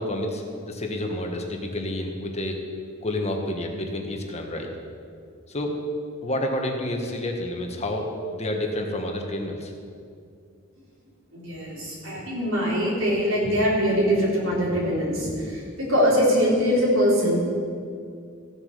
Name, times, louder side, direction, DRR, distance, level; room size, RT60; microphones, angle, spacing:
voice 1, 0.0-2.6 3.0-4.7 5.5-5.7 6.2-9.7, left 1 dB, 30° left, 2 dB, 1.4 m, -29 dB
voice 2, 11.3-17.4, equal, 70° right, -5 dB, 3.9 m, -22 dB
15.0 x 7.1 x 6.7 m, 2.3 s
head